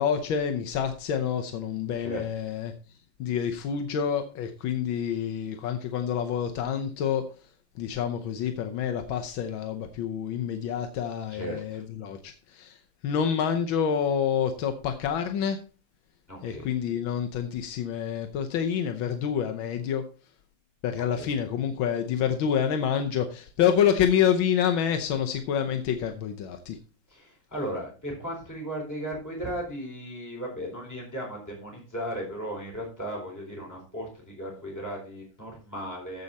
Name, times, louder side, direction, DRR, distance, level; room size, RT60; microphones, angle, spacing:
voice 1, 0.0-2.7 3.2-7.3 7.8-12.8 13.0-15.6 16.4-20.0 20.8-26.8, left 8 dB, 90° left, 6 dB, 1.7 m, -27 dB
voice 2, 11.3-11.8 16.3-16.7 21.1-21.3 27.1-36.2, right 1 dB, 10° left, -2 dB, 4.1 m, -36 dB
14.5 x 5.4 x 4.1 m, 0.35 s
omnidirectional pair, 2.1 m